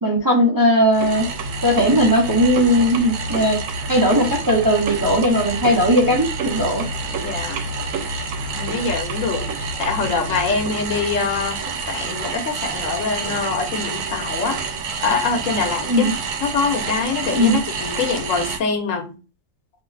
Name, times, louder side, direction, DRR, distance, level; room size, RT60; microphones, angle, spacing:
voice 1, 0.0-1.3 1.6-3.6 3.9-6.9 15.9-16.1 17.3-17.6, equal, 30° right, 0.4 m, -18 dB
sound 1, 0.9-18.6, right 4 dB, 80° right, 1.0 m, -28 dB
voice 2, 7.2-7.6 8.5-11.6 11.9-14.6 15.0-16.1 16.4-19.1, left 4 dB, 75° left, 1.1 m, -24 dB
4.5 x 2.7 x 2.3 m
omnidirectional pair, 1.4 m